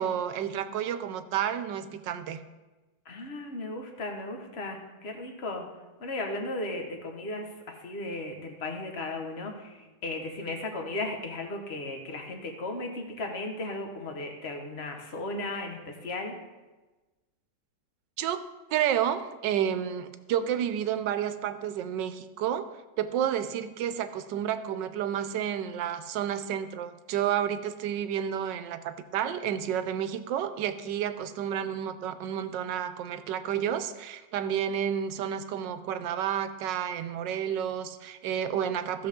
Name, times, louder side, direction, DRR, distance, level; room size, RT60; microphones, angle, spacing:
voice 1, 0.0-2.4 18.2-18.4 18.7-22.6 23.0-39.1, right 9 dB, 85° right, 11 dB, 1.3 m, -30 dB
voice 2, 3.0-5.6 6.0-16.3, left 2 dB, 40° left, 3 dB, 1.4 m, -36 dB
15.5 x 6.5 x 3.6 m, 1.2 s
omnidirectional pair, 1.9 m